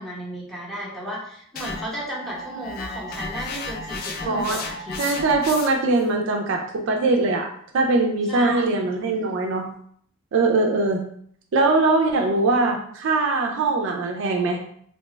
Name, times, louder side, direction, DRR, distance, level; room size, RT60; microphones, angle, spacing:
voice 1, 0.0-5.0 8.3-8.7, right 1 dB, ahead, -6 dB, 0.7 m, -34 dB
sound 1, 1.6-6.0, left 3 dB, 45° left, 0.3 m, -34 dB
voice 2, 4.3-4.6 5.0-7.5 7.7-9.7 10.3-11.0 11.5-14.6, right 3 dB, 55° right, 2 dB, 0.4 m, -21 dB
2.8 x 2.2 x 3.1 m, 0.63 s
head